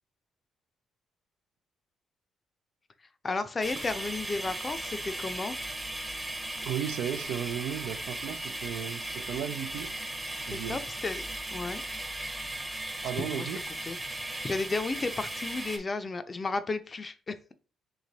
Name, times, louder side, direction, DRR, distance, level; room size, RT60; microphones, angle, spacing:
voice 1, 3.2-5.6 10.5-11.3 11.5-11.8 13.2-13.5 13.9-14.0 14.4-17.4, left 3 dB, 30° left, 0.5 m, -33 dB
sound 1, 3.6-15.8, right 1 dB, 15° right, 0.7 m, -37 dB
voice 2, 6.6-10.0 10.5-10.8 13.0-13.6, right 10 dB, 85° right, 0.4 m, -35 dB
3.3 x 3.0 x 3.9 m
cardioid pair, 90°, 0 cm